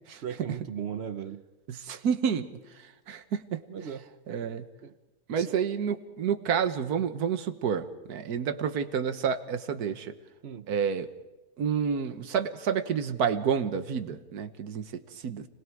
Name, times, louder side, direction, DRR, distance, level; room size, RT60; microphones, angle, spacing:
voice 1, 0.2-1.4 3.7-4.1 4.4-4.5 4.8-4.9 5.4-5.6 10.4-10.7, right 8 dB, 50° right, 12 dB, 0.8 m, -37 dB
voice 2, 1.7-2.5 3.1-3.6 4.3-4.7 5.3-10.2 10.7-11.1 11.6-15.5, right 7 dB, 70° right, 9 dB, 1.6 m, -29 dB
30.0 x 19.5 x 4.7 m, 1.1 s
omnidirectional pair, 1.7 m